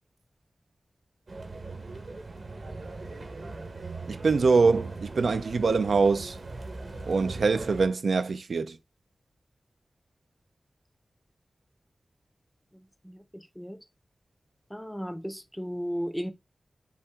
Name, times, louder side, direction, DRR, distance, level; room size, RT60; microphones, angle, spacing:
sound 1, 1.3-7.9, right 3 dB, 65° right, 1.1 m, -40 dB
voice 1, 4.1-6.4 7.1-8.8, right 4 dB, 85° right, 0.4 m, -24 dB
voice 2, 12.7-13.8 14.7-16.3, equal, 5° left, 0.5 m, -35 dB
5.6 x 2.5 x 3.6 m
wide cardioid pair, 85°, 0 cm